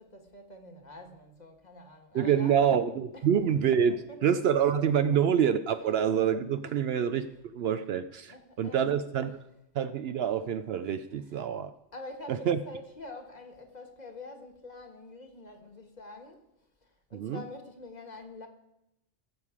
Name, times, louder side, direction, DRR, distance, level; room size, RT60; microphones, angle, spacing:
voice 1, 0.0-3.3 3.9-4.2 4.9-5.2 6.6-6.9 7.2-7.4 8.3-9.0 11.3-11.4 11.9-16.5 16.8-18.5, left 2 dB, 40° left, 1.4 m, -46 dB
voice 2, 2.1-9.4 9.7-11.7 12.3-12.6 17.1-17.4, right 8 dB, 65° right, 0.7 m, -27 dB
18.0 x 7.3 x 4.8 m
omnidirectional pair, 1.2 m